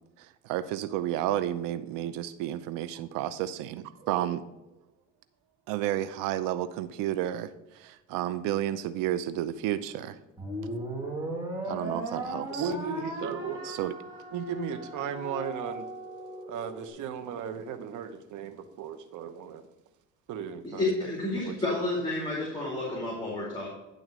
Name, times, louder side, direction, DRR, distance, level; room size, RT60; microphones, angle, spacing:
voice 1, 0.2-4.5 5.7-10.2 11.7-12.7 13.6-13.9, right 12 dB, 85° right, 0.6 m, -31 dB
sound 1, 10.4-16.9, right 1 dB, 10° right, 2.4 m, -37 dB
voice 2, 12.6-13.8 14.3-15.8 16.5-19.6 20.3-21.1 21.5-21.6, right 7 dB, 65° right, 1.0 m, -36 dB
voice 3, 20.6-23.7, left 2 dB, 15° left, 2.5 m, -30 dB
10.5 x 3.9 x 6.1 m
cardioid pair, 105°, 32 cm